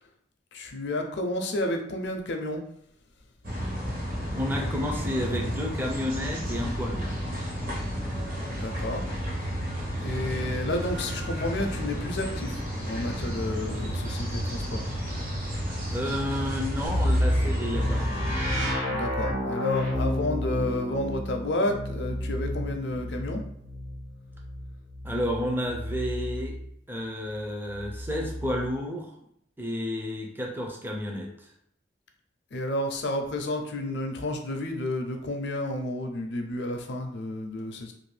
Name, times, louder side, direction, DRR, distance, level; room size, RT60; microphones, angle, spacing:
voice 1, 0.5-2.6 8.5-9.0 10.0-14.8 18.9-23.4 32.5-37.9, left 1 dB, 65° left, 4 dB, 0.5 m, -31 dB
sound 1, 3.4-18.7, equal, 45° right, 0.9 m, -32 dB
voice 2, 4.3-7.1 15.9-18.3 25.0-26.5 26.9-29.1 29.6-31.5, left 1 dB, 10° right, 0 dB, 0.4 m, -31 dB
sound 2, 16.8-26.7 27.7-28.7, equal, 80° right, 1.4 m, -30 dB
2.6 x 2.5 x 3.2 m, 0.72 s
head